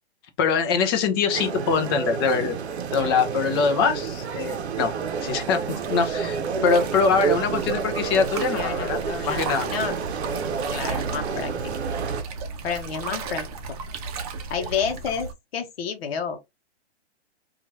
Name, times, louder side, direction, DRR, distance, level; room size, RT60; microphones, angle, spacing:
voice 1, 0.4-2.6 2.9-4.9 5.2-9.0 9.3-9.6, left 5 dB, 25° left, 0.4 m, -23 dB
sound 1, 1.3-12.2, right 6 dB, 75° right, 0.7 m, -29 dB
sound 2, 3.2-15.3, right 4 dB, 35° right, 0.6 m, -36 dB
voice 2, 8.5-10.0 10.7-11.5 12.6-13.8 14.5-16.4, left 6 dB, 60° left, 0.8 m, -30 dB
2.9 x 2.4 x 2.6 m
hypercardioid pair, 140°, 33 cm